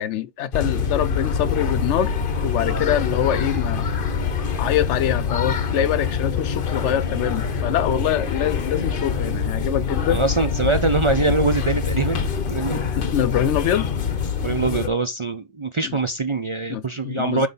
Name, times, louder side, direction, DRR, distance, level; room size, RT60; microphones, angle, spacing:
voice 1, 0.0-2.1 2.4-3.9 4.6-10.2 12.7-13.9 15.8-16.0 16.7-17.5, left 10 dB, 85° left, 0.9 m, -24 dB
sound 1, 0.5-14.9, left 6 dB, 55° left, 1.0 m, -25 dB
voice 2, 10.1-12.8 14.4-17.5, right 3 dB, 40° right, 0.4 m, -23 dB
9.1 x 3.2 x 3.9 m
omnidirectional pair, 1.2 m